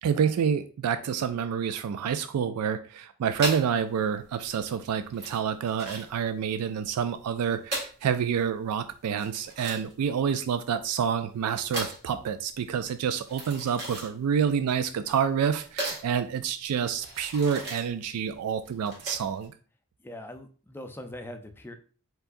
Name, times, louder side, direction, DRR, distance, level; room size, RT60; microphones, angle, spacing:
voice 1, 0.0-19.5, right 7 dB, 85° right, 11 dB, 0.3 m, -28 dB
sound 1, 3.4-19.5, right 2 dB, 50° right, 1.8 m, -38 dB
voice 2, 20.0-21.8, left 1 dB, 10° left, 6 dB, 0.4 m, -41 dB
4.6 x 3.9 x 2.6 m, 0.40 s
head